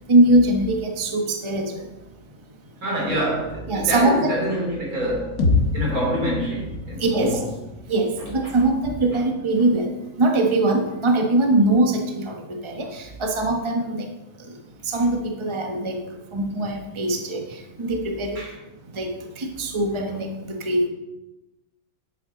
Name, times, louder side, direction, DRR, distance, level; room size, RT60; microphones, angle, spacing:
voice 1, 0.1-1.7 3.7-4.2 7.0-7.4 7.9-14.1 14.8-16.0 16.3-18.4 18.9-20.9, right 2 dB, 20° right, 1.1 m, -22 dB
voice 2, 2.8-5.4 5.7-7.5 8.2-8.5 12.8-12.9 18.4-18.6 20.1-20.2, equal, 75° right, 3.7 m, -26 dB
sound 1, 5.4-9.4, left 3 dB, 90° left, 2.0 m, -27 dB
11.5 x 8.2 x 3.9 m
omnidirectional pair, 1.6 m